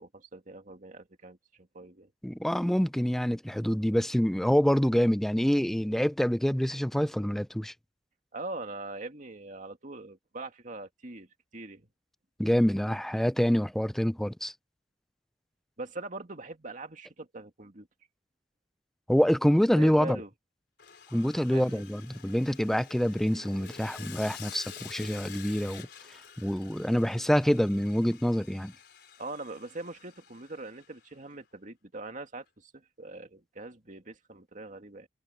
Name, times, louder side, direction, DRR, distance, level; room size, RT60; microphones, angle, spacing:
voice 1, 0.0-2.1 8.3-11.3 11.5-11.9 15.8-17.9 19.7-20.3 21.5-21.8 29.2-35.1, right 2 dB, 45° right, 2.2 m, -42 dB
voice 2, 2.2-7.7 12.4-14.5 19.1-20.2 21.1-25.9 26.4-28.7, equal, ahead, 0.3 m, -26 dB
Sawing, 20.8-31.0, left 8 dB, 65° left, 4.0 m, -49 dB
head